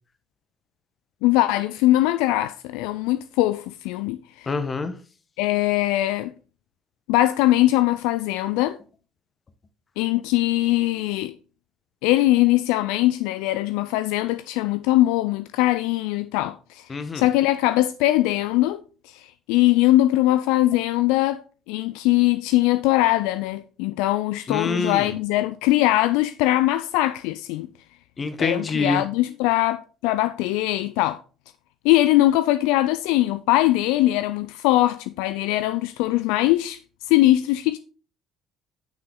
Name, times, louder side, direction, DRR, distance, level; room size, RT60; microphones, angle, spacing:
voice 1, 1.2-4.5 5.4-6.3 7.1-8.8 10.0-11.3 12.0-16.8 17.1-18.8 19.5-21.4 21.7-27.7 28.4-31.2 31.8-36.8 37.1-37.8, left 16 dB, 75° left, 0.3 m, -21 dB
voice 2, 4.5-4.9 16.9-17.2 24.5-25.1 28.2-29.0, left 3 dB, 35° left, 1.4 m, -26 dB
9.3 x 6.0 x 3.7 m
hypercardioid pair, 60°, 0 cm